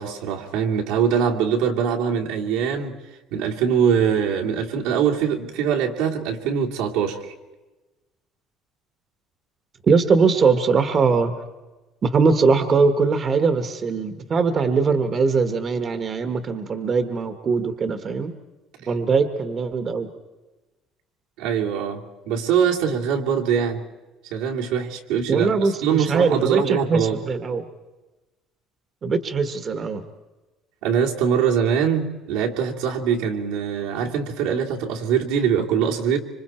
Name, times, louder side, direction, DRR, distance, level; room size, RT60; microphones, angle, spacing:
voice 1, 0.0-3.0 3.3-7.3 21.4-23.8 24.3-27.2 30.8-36.2, right 7 dB, 85° right, -1 dB, 2.8 m, -23 dB
voice 2, 9.9-11.3 12.0-18.3 18.9-20.1 25.3-27.6 29.0-30.0, right 4 dB, 30° right, 8 dB, 1.4 m, -21 dB
26.0 x 25.5 x 4.4 m, 1.1 s
cardioid pair, 140°, 0 cm